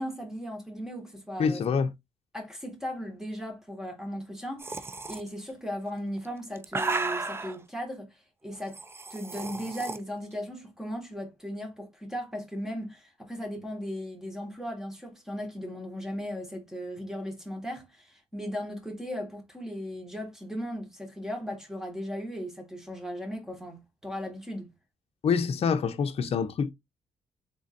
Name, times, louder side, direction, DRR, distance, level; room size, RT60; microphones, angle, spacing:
voice 1, 0.0-1.6 2.3-8.1 8.4-8.8 9.1-24.7, equal, 5° right, 1.9 m, -37 dB
voice 2, 1.4-1.9 25.2-26.7, left 6 dB, 60° left, 0.6 m, -26 dB
sound 1, 4.6-5.2 6.2-7.6 8.7-10.0, right 3 dB, 20° right, 0.5 m, -33 dB
3.8 x 3.6 x 2.6 m
cardioid pair, 90°, 12 cm